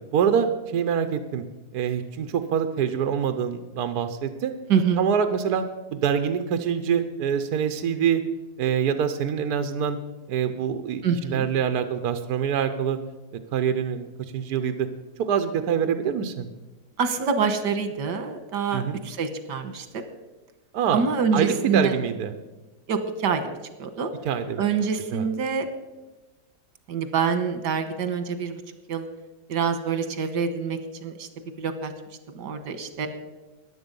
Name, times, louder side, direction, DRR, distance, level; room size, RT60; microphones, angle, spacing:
voice 1, 0.1-1.4 1.7-4.6 5.0-5.7 5.9-8.2 8.6-10.0 10.3-11.0 11.3-13.0 13.5-14.1 14.3-14.9 15.2-16.5 18.7-19.1 20.7-21.0 21.3-22.3 24.2-24.6 25.1-25.3, right 7 dB, 70° right, 8 dB, 1.3 m, -25 dB
voice 2, 4.7-5.0 11.0-11.5 17.0-19.9 20.9-22.0 22.9-23.4 23.8-24.1 24.6-25.7 26.9-28.6 28.9-29.1 29.5-31.3 31.6-31.9 32.4-33.1, right 6 dB, 85° right, 9 dB, 1.8 m, -26 dB
15.0 x 10.5 x 5.3 m, 1.1 s
omnidirectional pair, 1.8 m